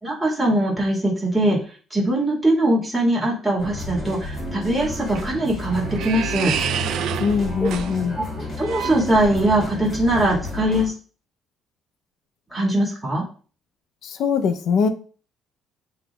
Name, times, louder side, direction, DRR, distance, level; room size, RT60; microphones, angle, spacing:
voice 1, 0.0-1.6 1.9-6.5 8.2-10.9 12.5-13.2, right 1 dB, 5° right, 1.9 m, -21 dB
sound 1, 3.6-10.9, left 1 dB, 25° left, 2.4 m, -31 dB
sound 2, 4.9-9.7, right 9 dB, 75° right, 0.4 m, -30 dB
voice 2, 7.2-8.2 14.0-14.9, left 6 dB, 65° left, 0.6 m, -22 dB
7.7 x 2.9 x 2.3 m
cardioid pair, 110°, 0 cm